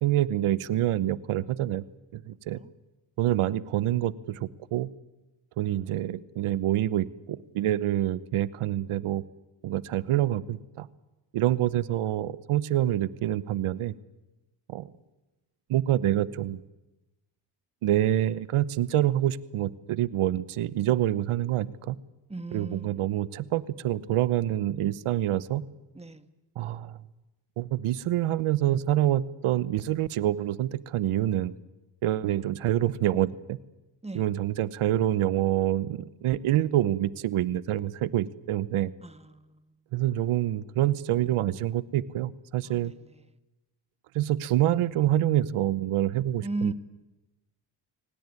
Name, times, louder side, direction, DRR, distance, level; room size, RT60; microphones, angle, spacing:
voice 1, 0.0-1.8 2.1-2.6 3.2-4.9 5.6-9.2 9.6-10.9 11.3-13.9 14.7-14.9 15.7-16.6 17.8-22.0 22.5-25.6 26.6-27.0 27.6-31.5 32.0-33.6 34.1-38.9 39.9-42.9 44.1-46.7, right 13 dB, 80° right, 1.0 m, -26 dB
voice 2, 22.3-23.1 25.9-26.3 34.0-34.2 39.0-39.6 42.6-42.9 46.4-46.7, right 2 dB, 10° right, 1.8 m, -36 dB
24.0 x 18.5 x 9.7 m
supercardioid pair, 55°, 49 cm